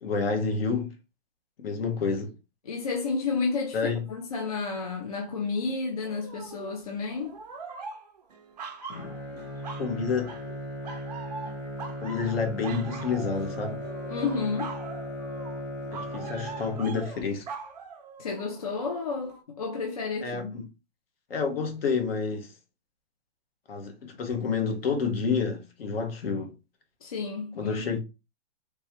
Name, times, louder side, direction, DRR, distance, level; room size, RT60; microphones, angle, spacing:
voice 1, 0.0-0.9 1.6-2.3 3.7-4.0 9.8-10.3 12.0-13.8 15.9-17.5 20.2-20.6 21.3-22.5 23.7-26.5 27.6-28.0, left 5 dB, 55° left, 1.2 m, -29 dB
voice 2, 2.6-3.8 4.1-7.4 14.1-14.7 18.2-20.6 27.0-28.0, left 4 dB, 35° left, 0.4 m, -31 dB
sound 1, 6.0-6.8 7.2-9.9 10.2-10.6 10.8-18.8 19.3-19.4, right 4 dB, 35° right, 0.5 m, -42 dB
Bowed string instrument, 8.9-17.2, equal, 90° left, 1.7 m, -37 dB
3.5 x 3.0 x 2.9 m
hypercardioid pair, 175°, 35 cm